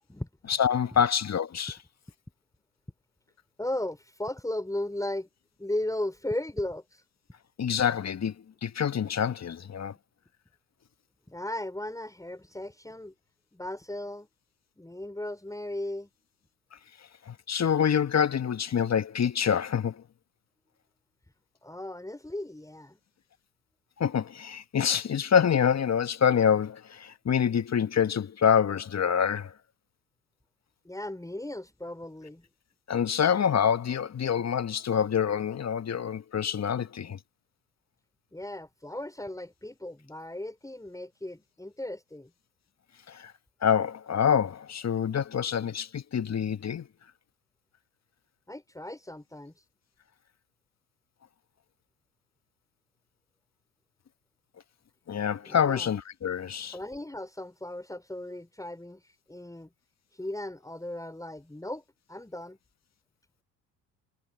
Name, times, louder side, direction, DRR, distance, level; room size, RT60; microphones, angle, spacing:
voice 1, 0.5-1.7 7.6-8.3 8.6-9.9 17.3-20.0 24.0-29.5 32.9-37.2 43.1-43.3 43.6-46.9 55.1-56.7, left 8 dB, 35° left, 1.8 m, -26 dB
voice 2, 3.6-5.3 5.6-7.0 11.3-13.1 13.5-14.3 14.8-16.1 21.6-23.0 30.8-32.5 38.3-42.3 48.5-49.6 55.4-55.9 56.7-59.7 60.1-62.6, left 1 dB, 5° left, 5.4 m, -36 dB
hypercardioid pair, 55°, 45 cm